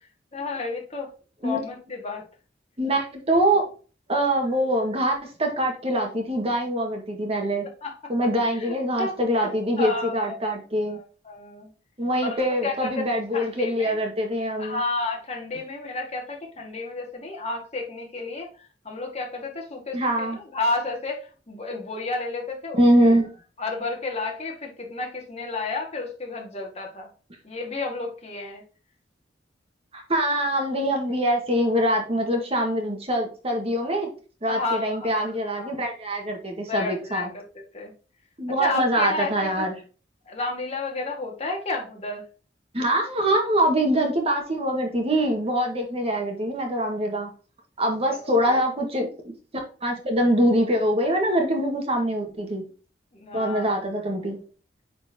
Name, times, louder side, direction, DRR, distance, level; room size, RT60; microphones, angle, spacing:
voice 1, 0.3-1.1 1.4-2.2 7.8-7.9 8.4-9.5 9.8-10.4 10.8-11.7 12.2-12.9 13.3-14.0 14.6-22.8 23.6-27.1 27.4-28.6 34.5-35.7 36.7-37.9 38.6-39.7 40.3-42.2 48.1-48.6 53.1-53.8, left 3 dB, 35° left, 1 dB, 1.9 m, -31 dB
voice 2, 2.8-3.6 4.1-7.7 8.1-11.0 12.0-14.8 19.9-20.4 22.7-23.3 29.9-34.1 34.4-37.3 38.4-39.7 42.7-47.3 47.8-49.3 49.8-52.6 53.3-54.4, right 1 dB, 35° right, 2 dB, 1.7 m, -24 dB
9.1 x 4.4 x 2.8 m, 0.36 s
head